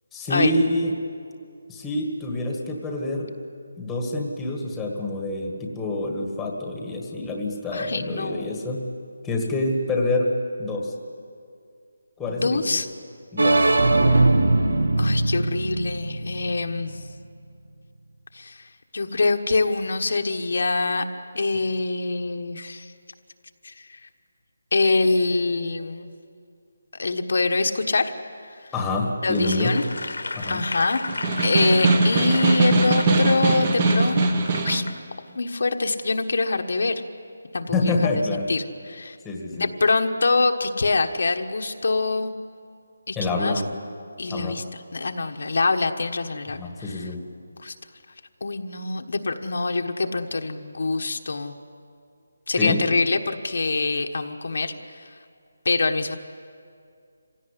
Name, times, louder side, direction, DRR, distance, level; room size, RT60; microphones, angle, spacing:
voice 1, 0.1-0.9 1.7-3.3 3.8-8.8 9.2-10.3 10.6-10.9 12.2-12.8 13.3-14.2 28.7-29.7 30.3-30.6 37.7-38.5 39.2-39.7 43.1-43.7 44.3-44.6 46.6-47.2 52.6-52.8, left 2 dB, 5° left, 1 dB, 1.7 m, -27 dB
voice 2, 7.7-8.5 12.3-12.9 15.0-17.0 18.3-18.6 18.9-21.0 21.3-22.9 23.6-24.1 24.7-26.1 27.0-28.1 29.2-29.8 30.5-31.0 31.4-34.3 34.6-34.9 35.3-37.0 37.5-38.1 38.5-39.2 39.5-42.3 43.1-43.6 44.2-44.6 44.9-47.0 47.6-47.7 48.4-51.5 52.5-54.7 55.6-56.2, left 3 dB, 60° left, 5 dB, 1.4 m, -24 dB
sound 1, 13.4-17.1, right 2 dB, 80° right, 1.6 m, -21 dB
Applause / Crowd, 29.3-35.0 35.5-35.7, left 3 dB, 80° left, 1.8 m, -34 dB
Snare drum, 31.1-34.9, right 3 dB, 25° right, 1.3 m, -21 dB
26.0 x 17.0 x 9.9 m, 2.3 s
hypercardioid pair, 175°, 0 cm